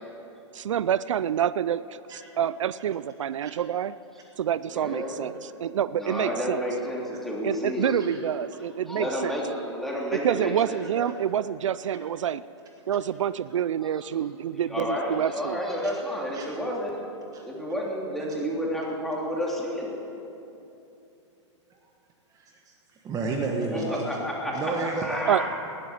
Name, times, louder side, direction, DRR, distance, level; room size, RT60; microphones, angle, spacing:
voice 1, 0.5-3.9 4.4-6.6 7.4-9.4 10.1-12.4 12.9-15.6 25.3-25.5, right 9 dB, 85° right, 17 dB, 0.4 m, -27 dB
voice 2, 4.7-5.3 5.9-8.0 8.9-11.1 13.8-14.0 14.7-16.9 17.4-20.0 23.7-25.5, equal, ahead, -4 dB, 3.1 m, -31 dB
voice 3, 22.3-22.7 23.0-24.0 24.5-25.5, right 3 dB, 20° right, 1 dB, 1.4 m, -31 dB
19.0 x 7.7 x 9.7 m, 2.8 s
hypercardioid pair, 130°, 16 cm